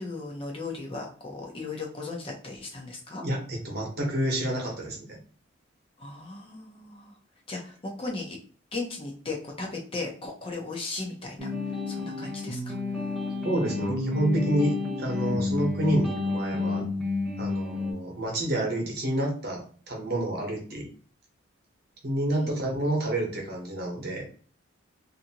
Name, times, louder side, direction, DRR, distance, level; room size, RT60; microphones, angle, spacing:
voice 1, 0.0-3.2 6.0-7.2 7.5-8.4 8.7-12.8 22.3-22.5, left 3 dB, 25° left, 0 dB, 0.5 m, -37 dB
voice 2, 3.2-5.0 13.4-16.8 17.4-20.9 22.0-24.3, right 1 dB, 50° right, 0 dB, 0.9 m, -28 dB
sound 1, 11.4-17.9, left 3 dB, ahead, 0.8 m, -30 dB
2.6 x 2.5 x 2.7 m, 0.43 s
head